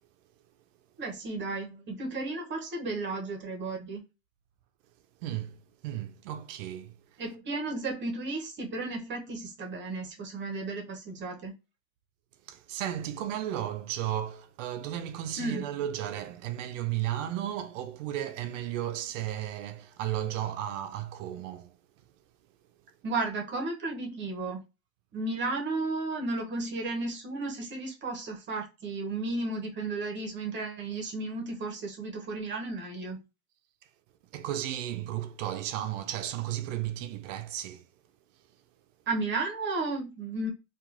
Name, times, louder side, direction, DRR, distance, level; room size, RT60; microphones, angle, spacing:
voice 1, 1.0-4.0 7.2-11.5 15.4-15.6 23.0-24.6 25.1-33.2 39.1-40.5, right 3 dB, 25° right, 0.7 m, -33 dB
voice 2, 5.2-7.0 12.5-21.8 34.3-37.8, right 12 dB, 60° right, 0.5 m, -34 dB
2.9 x 2.3 x 2.4 m
hypercardioid pair, 105°, 42 cm